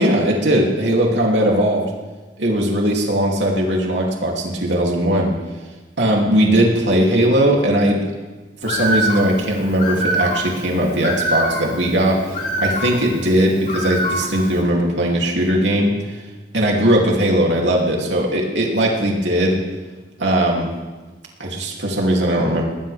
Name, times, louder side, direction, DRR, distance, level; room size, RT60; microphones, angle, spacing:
voice 1, 0.0-1.9 2.4-5.3 6.0-8.0 8.6-15.9 16.5-19.6 20.2-20.7 21.4-22.6, right 1 dB, 90° right, -1 dB, 3.1 m, -18 dB
Bird, 8.6-14.6, equal, 40° left, 3.4 m, -25 dB
20.0 x 20.0 x 3.6 m, 1.3 s
head